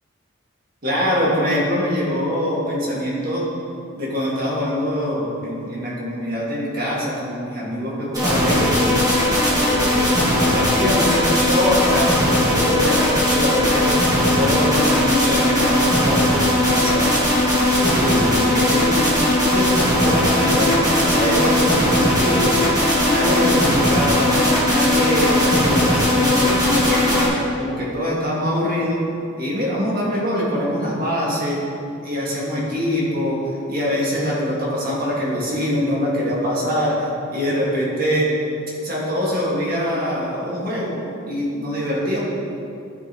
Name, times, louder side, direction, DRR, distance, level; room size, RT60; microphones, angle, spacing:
voice 1, 0.8-3.5 4.0-9.0 9.5-14.0 14.4-17.1 17.8-19.7 20.0-24.3 24.6-27.1 27.6-29.0 29.4-31.6 32.0-38.4 38.8-42.2, equal, 45° right, -6 dB, 1.9 m, -23 dB
sound 1, 8.1-27.3, left 1 dB, 20° right, 1.6 m, -18 dB
12.0 x 5.2 x 3.0 m, 2.5 s
head